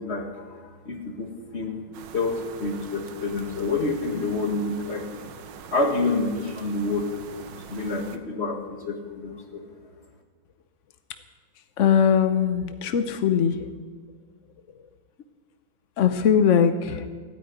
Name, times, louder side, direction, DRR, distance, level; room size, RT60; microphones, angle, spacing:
voice 1, 0.0-1.8 2.1-5.1 5.7-7.1 7.5-9.6, left 3 dB, 35° left, 2 dB, 2.1 m, -28 dB
sound 1, 1.9-8.2, right 7 dB, 65° right, 1.5 m, -43 dB
voice 2, 11.8-13.7 16.0-17.1, left 7 dB, 70° left, 8 dB, 0.7 m, -21 dB
16.0 x 9.5 x 9.5 m, 1.5 s
omnidirectional pair, 2.2 m